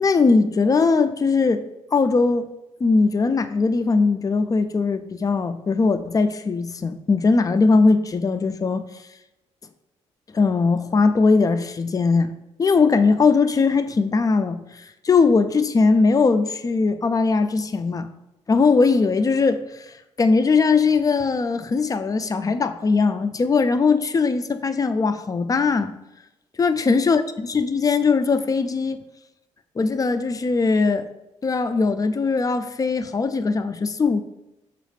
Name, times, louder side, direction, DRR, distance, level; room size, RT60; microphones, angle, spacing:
voice 1, 0.0-1.6 1.9-2.5 2.8-8.8 10.3-12.3 12.6-18.1 18.5-19.9 20.2-25.9 26.6-29.0 29.8-31.1 31.4-34.2, left 4 dB, 25° left, 10 dB, 0.4 m, -20 dB
6.2 x 2.4 x 3.2 m, 0.93 s
supercardioid pair, 60°, 13 cm